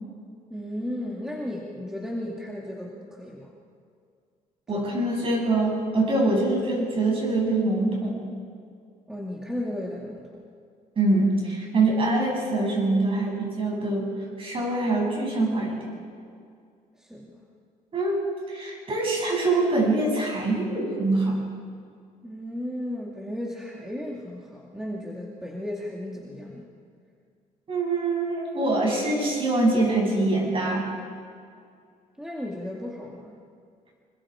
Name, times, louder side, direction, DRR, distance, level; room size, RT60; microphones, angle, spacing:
voice 1, 0.5-3.5 4.7-4.9 9.1-10.3 17.0-17.3 22.2-26.6 32.2-33.4, left 1 dB, 5° right, -3 dB, 2.3 m, -34 dB
voice 2, 4.7-8.2 11.0-14.1 14.4-15.9 17.9-21.5 27.7-30.8, right 2 dB, 40° right, -1 dB, 7.7 m, -24 dB
26.0 x 21.5 x 5.0 m, 2.2 s
cardioid pair, 130°, 14 cm